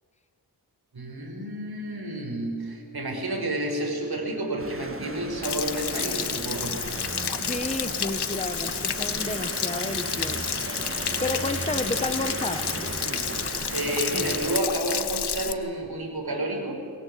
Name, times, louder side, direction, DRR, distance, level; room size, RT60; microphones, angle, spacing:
voice 1, 0.9-6.8 13.7-16.7, right 1 dB, 70° right, 1 dB, 6.4 m, -30 dB
sound 1, 4.6-14.6, right 3 dB, 35° right, 1.9 m, -35 dB
Stream / Splash splatter / Trickle dribble, 5.4-15.5, left 7 dB, 85° left, 1.2 m, -30 dB
voice 2, 7.4-10.6 10.9-12.9, left 2 dB, 15° left, 8 dB, 1.5 m, -32 dB
22.0 x 20.5 x 8.5 m, 2.5 s
cardioid pair, 50°, 39 cm